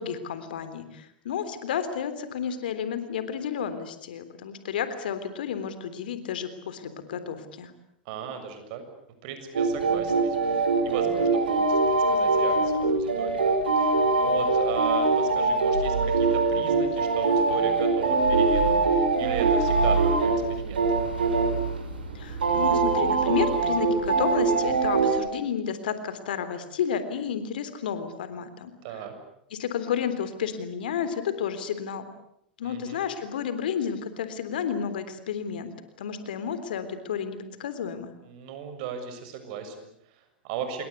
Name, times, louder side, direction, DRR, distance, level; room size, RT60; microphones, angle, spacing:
voice 1, 0.0-7.7 22.1-28.7 29.5-32.1 32.6-35.7 36.0-38.1, left 8 dB, 70° left, 11 dB, 3.5 m, -31 dB
voice 2, 8.1-8.8 9.2-11.8 12.1-13.4 13.8-20.8 28.8-29.1 32.6-33.0 38.2-40.9, right 7 dB, 55° right, 8 dB, 7.0 m, -36 dB
sound 1, 9.5-25.2, right 3 dB, 80° right, 6.5 m, -23 dB
28.0 x 22.5 x 8.4 m, 0.74 s
hypercardioid pair, 95°, 5 cm